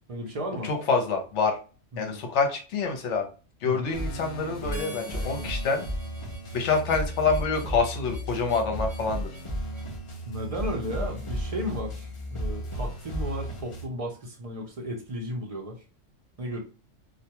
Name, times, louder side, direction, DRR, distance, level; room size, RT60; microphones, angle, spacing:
voice 1, 0.1-0.7 1.9-2.2 3.6-4.0 10.3-15.8 16.4-16.6, equal, 50° right, 1 dB, 0.4 m, -34 dB
voice 2, 0.6-1.6 2.0-3.3 3.6-5.8 6.5-9.3, left 4 dB, 70° left, 4 dB, 1.0 m, -26 dB
sound 1, 3.9-13.9, equal, 55° left, 0.3 m, -34 dB
Harmonica, 4.7-9.9, right 2 dB, 10° left, 0.6 m, -48 dB
2.3 x 2.2 x 2.8 m, 0.35 s
omnidirectional pair, 1.3 m